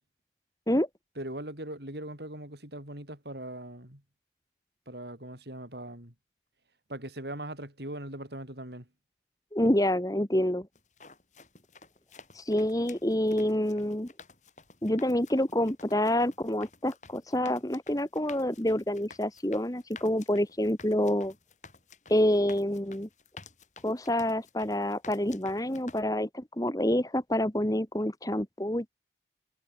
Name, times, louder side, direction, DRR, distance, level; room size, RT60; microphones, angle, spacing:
voice 1, 1.2-4.0 4.9-6.1 6.9-8.9, right 1 dB, 70° right, 7.6 m, -40 dB
voice 2, 9.5-10.7 12.3-14.1 14.8-21.3 22.1-23.1 23.8-28.9, left 1 dB, 20° left, 1.7 m, -27 dB
sound 1, 10.8-26.0, left 4 dB, 45° left, 7.1 m, -53 dB
head